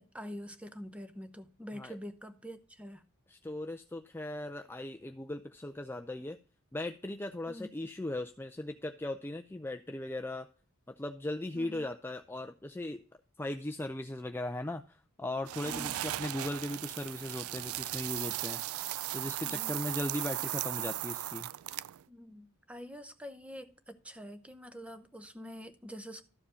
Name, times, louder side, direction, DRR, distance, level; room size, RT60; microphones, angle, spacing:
voice 1, 0.0-3.0 7.5-7.7 11.5-11.9 15.6-16.0 19.4-19.8 22.1-26.2, equal, 5° right, 0.9 m, -46 dB
voice 2, 3.3-6.4 6.7-10.5 10.9-13.0 13.4-18.9 19.1-21.5, left 1 dB, 10° left, 0.5 m, -38 dB
sound 1, 15.5-22.0, right 15 dB, 85° right, 0.3 m, -37 dB
13.0 x 4.9 x 5.0 m
head